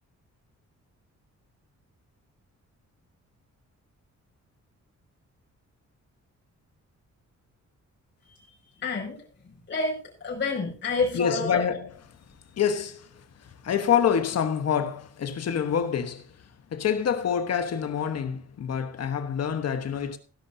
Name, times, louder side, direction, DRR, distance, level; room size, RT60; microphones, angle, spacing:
voice 1, 8.8-9.2 9.7-11.6, left 3 dB, 40° left, 5.9 m, -28 dB
voice 2, 11.1-11.9 12.6-13.1 13.6-16.3 16.7-20.2, left 8 dB, 60° left, 1.2 m, -26 dB
17.0 x 11.5 x 2.7 m
wide cardioid pair, 155°, 30 cm